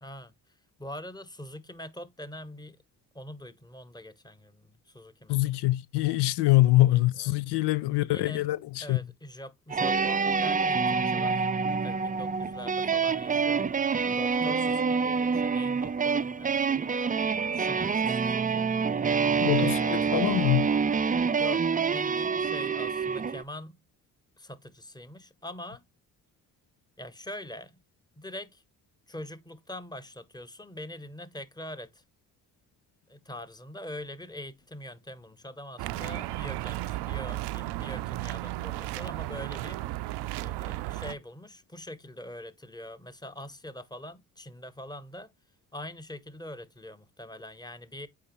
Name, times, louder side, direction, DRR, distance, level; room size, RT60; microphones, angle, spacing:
voice 1, 0.0-2.8 3.1-5.4 7.1-7.3 7.8-8.5 8.8-11.5 11.8-13.7 14.1-16.9 17.5-18.7 19.6-20.1 21.4-23.8 24.4-25.8 27.0-27.8 28.2-28.6 29.1-32.0 33.1-40.1 40.4-45.3 45.7-48.1, left 1 dB, 10° left, 1.1 m, -43 dB
voice 2, 5.3-9.0 19.4-20.7, left 17 dB, 85° left, 0.6 m, -24 dB
sound 1, 9.7-23.4, right 5 dB, 20° right, 0.4 m, -27 dB
sound 2, 35.8-41.2, right 17 dB, 80° right, 0.6 m, -34 dB
8.4 x 4.1 x 3.0 m
supercardioid pair, 60°, 40 cm